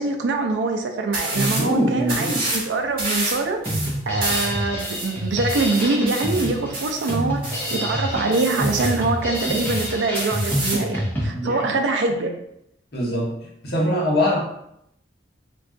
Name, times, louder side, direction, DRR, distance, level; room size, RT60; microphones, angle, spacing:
voice 1, 0.0-3.6 4.1-7.4 7.7-12.3, right 3 dB, 80° right, 5 dB, 0.4 m, -24 dB
sound 1, 1.1-1.7 2.0-2.7 3.0-7.8 8.3-9.0 9.3-10.9, right 1 dB, 55° right, 1.1 m, -29 dB
voice 2, 1.3-2.4 11.3-11.7 12.9-13.3 13.6-14.4, equal, 60° left, -3 dB, 0.9 m, -22 dB
Drum kit, 3.7-11.3, equal, 10° left, 0.7 m, -27 dB
2.3 x 2.3 x 3.6 m, 0.77 s
head